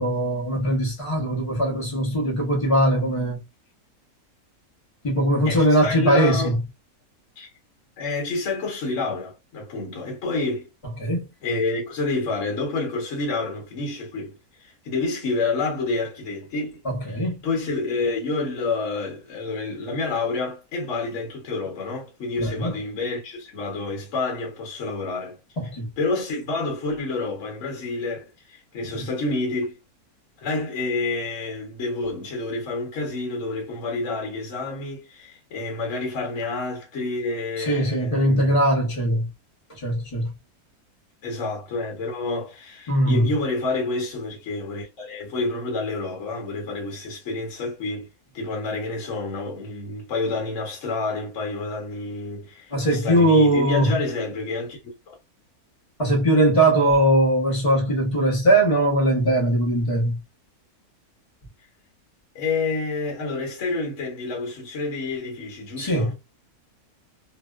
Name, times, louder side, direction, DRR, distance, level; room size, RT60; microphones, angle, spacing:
voice 1, 0.0-3.4 5.0-6.6 11.0-11.3 16.8-17.4 22.4-22.8 25.6-25.9 28.9-29.0 37.6-39.3 39.7-40.3 42.9-43.3 52.7-54.0 56.0-60.2 65.8-66.1, right 1 dB, 30° left, 0.6 m, -20 dB
voice 2, 5.4-6.5 7.4-7.5 8.0-10.7 11.4-16.8 17.4-25.4 26.0-29.8 30.4-38.6 41.2-48.1 48.3-54.8 55.1-55.2 62.3-66.1, left 3 dB, 60° left, 1.1 m, -28 dB
2.8 x 2.1 x 2.2 m
omnidirectional pair, 1.6 m